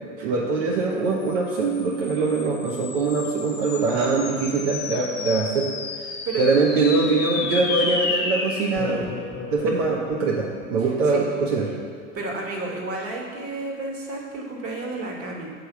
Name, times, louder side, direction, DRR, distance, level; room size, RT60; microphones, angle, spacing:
voice 1, 0.2-9.2 9.5-11.7, right 3 dB, 75° right, -1 dB, 0.9 m, -23 dB
sound 1, 1.3-12.0, left 3 dB, 25° left, 1.1 m, -32 dB
voice 2, 12.1-15.5, right 3 dB, 35° right, 0 dB, 1.6 m, -31 dB
7.7 x 3.4 x 5.7 m, 2.2 s
hypercardioid pair, 80°, 38 cm